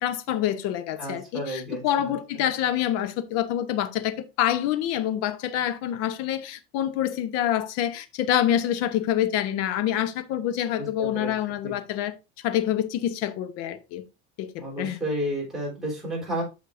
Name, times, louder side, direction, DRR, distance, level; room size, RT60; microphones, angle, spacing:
voice 1, 0.0-12.1 12.4-14.0 14.4-14.5 14.8-15.0, left 11 dB, 55° left, 1.0 m, -26 dB
voice 2, 1.0-2.1 10.8-11.3 11.6-11.7 14.6-16.4, equal, ahead, 3.8 m, -31 dB
8.3 x 6.5 x 2.6 m
cardioid pair, 165°, 29 cm